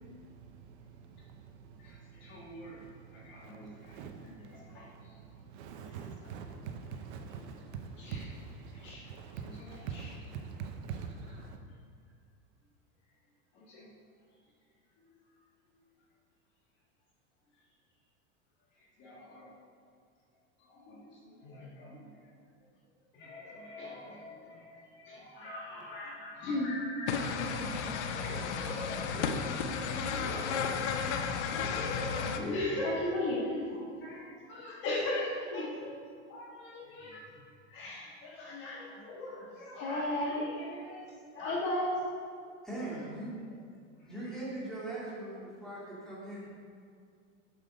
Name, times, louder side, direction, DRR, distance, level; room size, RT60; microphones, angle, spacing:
voice 1, 0.1-11.6, right 6 dB, 60° right, 6 dB, 0.8 m, -45 dB
voice 2, 1.8-2.8 3.1-4.9 5.7-6.3 8.0-8.3 8.7-9.1 9.4-10.2 10.9-11.4 13.5-13.9 19.0-19.5 20.7-22.1 23.1-31.0 31.4-36.0 36.3-37.3 37.7-41.0 41.3-42.0 44.0-44.1, left 1 dB, 30° left, -3 dB, 1.6 m, -39 dB
sound 1, 27.1-32.4, left 6 dB, 65° left, 0.8 m, -33 dB
voice 3, 42.6-43.3 44.1-46.5, right 2 dB, ahead, -8 dB, 2.0 m, -40 dB
7.7 x 6.8 x 5.2 m, 2.2 s
supercardioid pair, 170°, 37 cm